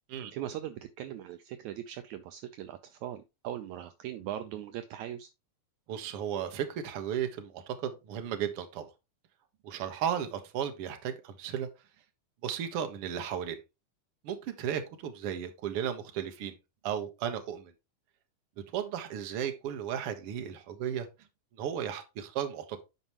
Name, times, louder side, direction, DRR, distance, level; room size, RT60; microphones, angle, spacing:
voice 1, 0.3-5.3, right 11 dB, 80° right, 1.8 m, -40 dB
voice 2, 5.9-8.9 9.6-11.7 12.4-13.6 14.2-16.5 16.8-17.7 18.7-21.1 21.6-22.8, right 9 dB, 60° right, 1.7 m, -34 dB
11.0 x 4.9 x 3.0 m
omnidirectional pair, 3.7 m